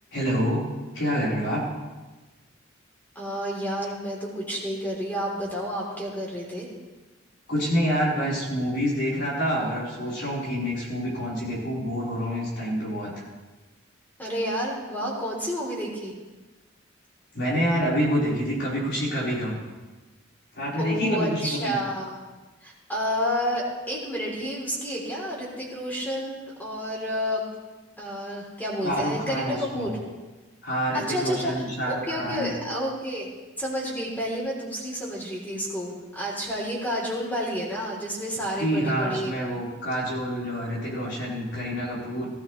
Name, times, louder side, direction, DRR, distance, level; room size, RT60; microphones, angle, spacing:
voice 1, 0.1-0.6 0.9-1.6 7.5-13.1 17.3-19.6 20.5-21.8 28.8-29.9 30.6-32.5 38.6-42.3, equal, 60° left, -6 dB, 4.8 m, -27 dB
voice 2, 3.2-6.7 14.2-16.1 20.8-22.2 22.6-27.5 28.0-29.9 30.9-31.5 31.9-33.3 33.6-39.6, equal, 10° left, -4 dB, 3.6 m, -30 dB
18.5 x 13.5 x 3.4 m, 1.2 s
head